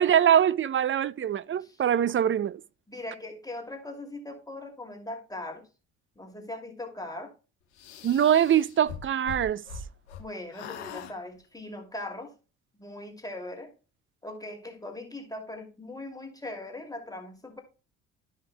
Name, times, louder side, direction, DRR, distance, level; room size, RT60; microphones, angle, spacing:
voice 1, 0.0-2.6 8.0-9.6, right 9 dB, 35° right, 0.6 m, -23 dB
voice 2, 2.9-5.7 6.2-7.3 10.2-12.3 12.7-13.7 14.2-17.6, left 2 dB, 10° left, 2.6 m, -40 dB
sound 1, 7.8-10.2 10.5-11.1, left 6 dB, 80° left, 1.1 m, -41 dB
13.5 x 5.6 x 2.2 m
hypercardioid pair, 50°, 33 cm